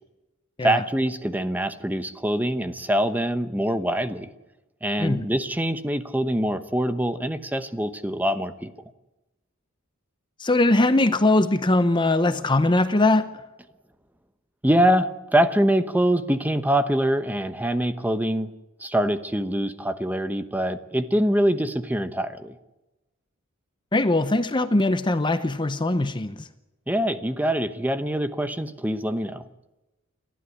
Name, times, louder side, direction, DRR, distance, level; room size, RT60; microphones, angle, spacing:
voice 1, 0.6-4.3 4.8-8.7 14.6-18.5 18.8-22.5 26.9-29.4, right 1 dB, 10° right, 11 dB, 0.9 m, -24 dB
voice 2, 10.4-13.3 23.9-26.5, left 2 dB, 25° left, 11 dB, 0.7 m, -21 dB
28.5 x 12.5 x 9.9 m, 1.0 s
head